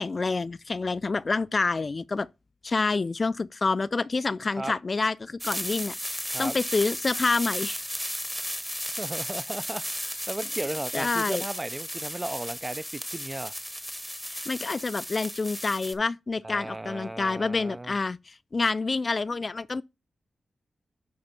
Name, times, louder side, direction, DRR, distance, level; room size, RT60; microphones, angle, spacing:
voice 1, 0.0-2.3 2.6-7.8 10.9-11.4 14.3-19.8, left 3 dB, 45° left, 0.3 m, -28 dB
sound 1, 5.4-16.0, equal, ahead, 0.9 m, -34 dB
voice 2, 9.0-13.5 16.4-18.0, right 2 dB, 25° right, 0.4 m, -35 dB
10.5 x 3.5 x 4.2 m
cardioid pair, 60°, 0 cm